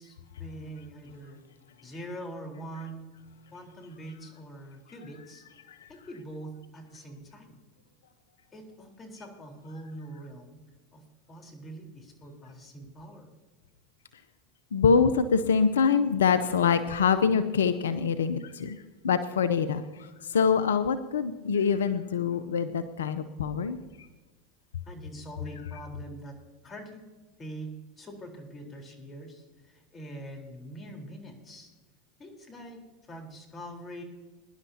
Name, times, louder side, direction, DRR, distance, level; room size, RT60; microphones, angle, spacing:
voice 1, 0.0-1.4 1.8-3.0 3.5-5.4 5.9-7.6 8.5-10.6 10.9-13.3 24.9-26.3 26.6-27.0 27.4-27.7 28.0-31.7 32.2-34.0, right 1 dB, 25° left, 2 dB, 3.9 m, -43 dB
voice 2, 14.7-23.8, left 6 dB, 85° left, 12 dB, 0.6 m, -25 dB
22.5 x 11.0 x 2.8 m, 1.3 s
hypercardioid pair, 90°, 0 cm